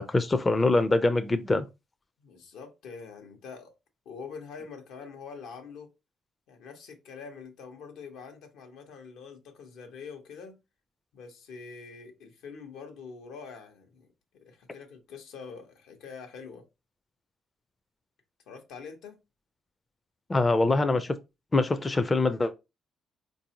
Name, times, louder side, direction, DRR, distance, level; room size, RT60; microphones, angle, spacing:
voice 1, 0.0-1.7 20.3-21.1 21.5-22.5, left 2 dB, 25° left, 0.4 m, -24 dB
voice 2, 2.2-3.7 4.0-5.9 6.5-10.6 11.1-14.1 14.4-16.6 18.5-19.2, left 5 dB, 90° left, 1.0 m, -45 dB
4.2 x 2.6 x 2.8 m
cardioid pair, 90°, 0 cm